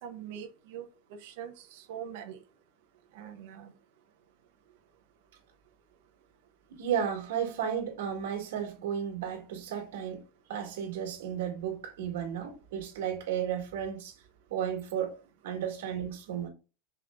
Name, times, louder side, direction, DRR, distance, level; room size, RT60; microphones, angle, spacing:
voice 1, 0.0-0.8 1.2-2.4 3.1-3.7, right 9 dB, 55° right, 1.0 m, -43 dB
voice 2, 6.7-10.2 10.5-14.1 14.5-15.2 15.4-16.5, right 8 dB, 90° right, 2.1 m, -33 dB
5.5 x 3.3 x 2.5 m
supercardioid pair, 175°, 0 cm